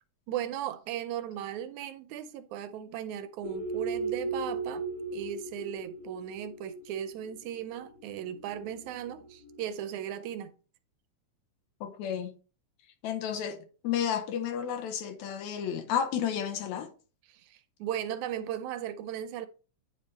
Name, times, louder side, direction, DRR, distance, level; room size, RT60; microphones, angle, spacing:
voice 1, 0.3-4.9 5.1-10.5 17.3-19.5, right 10 dB, 80° right, 1.9 m, -37 dB
sound 1, 3.4-9.6, right 4 dB, 55° left, 2.0 m, -37 dB
voice 2, 11.8-12.3 13.0-16.9, left 8 dB, 75° left, 2.0 m, -32 dB
9.4 x 3.4 x 4.0 m
omnidirectional pair, 3.5 m